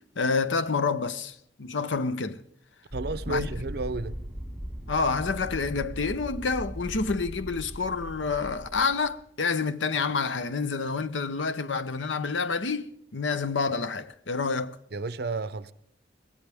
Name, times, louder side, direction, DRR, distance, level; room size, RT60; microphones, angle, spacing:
voice 1, 0.2-2.4 3.3-3.5 4.9-14.8, left 4 dB, 90° left, 0.8 m, -28 dB
sound 1, 2.9-9.1, equal, 5° right, 2.7 m, -38 dB
voice 2, 2.9-4.2 14.9-15.7, right 3 dB, 60° right, 0.6 m, -32 dB
22.5 x 17.0 x 3.5 m
head